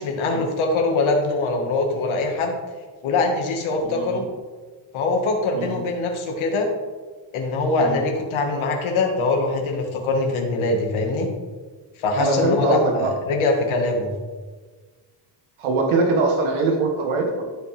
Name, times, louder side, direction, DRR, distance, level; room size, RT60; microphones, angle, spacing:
voice 1, 0.0-2.5 3.0-4.2 4.9-6.7 7.3-11.3 12.0-14.1, left 3 dB, 75° left, 2 dB, 1.8 m, -23 dB
voice 2, 3.9-4.2 5.5-5.8 7.8-8.0 12.2-13.1 15.6-17.4, right 3 dB, 85° right, 1 dB, 1.4 m, -22 dB
13.5 x 4.6 x 3.5 m, 1.4 s
cardioid pair, 80°, 48 cm